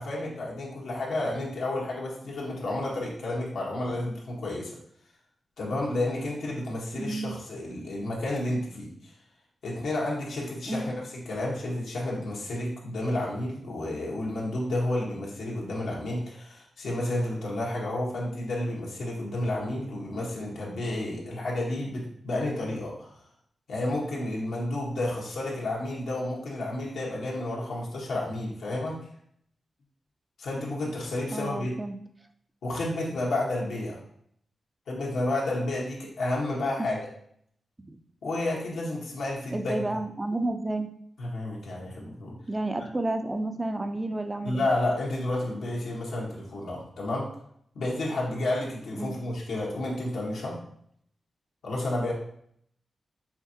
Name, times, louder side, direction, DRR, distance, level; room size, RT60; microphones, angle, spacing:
voice 1, 0.0-4.7 5.6-9.1 9.6-10.9 11.2-23.1 23.7-29.0 30.4-31.8 32.6-34.0 34.9-37.0 38.2-39.9 41.2-42.4 44.4-47.3 47.7-50.6 51.6-52.1, left 1 dB, 85° left, -4 dB, 1.2 m, -31 dB
voice 2, 6.9-7.3 10.7-10.9 31.3-32.0 36.8-36.9 37.9-38.0 39.5-40.9 42.5-44.7 48.9-49.2, right 2 dB, 25° right, 7 dB, 0.5 m, -31 dB
5.7 x 2.6 x 2.8 m, 0.68 s
cardioid pair, 60°, 0 cm